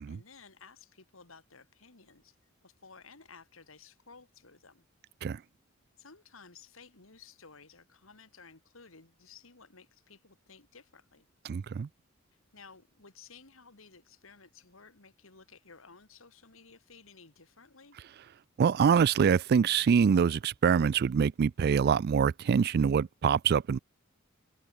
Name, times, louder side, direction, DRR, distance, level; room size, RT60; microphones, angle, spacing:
voice 1, 0.1-2.3 2.6-4.8 6.0-11.3 12.5-18.0, left 5 dB, 70° left, 2.7 m, -55 dB
voice 2, 11.5-11.9 18.6-23.8, right 6 dB, 50° right, 0.3 m, -25 dB
head